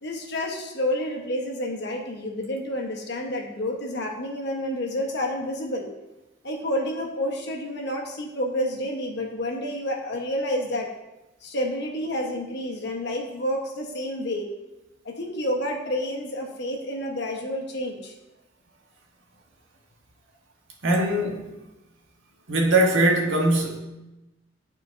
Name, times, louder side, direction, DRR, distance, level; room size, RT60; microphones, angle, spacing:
voice 1, 0.0-5.9 6.4-10.9 11.4-14.5 15.0-18.1, left 1 dB, 60° left, 1 dB, 1.2 m, -29 dB
voice 2, 20.8-21.5 22.5-23.8, right 1 dB, 90° right, 0 dB, 1.3 m, -21 dB
11.0 x 4.4 x 2.7 m, 0.99 s
head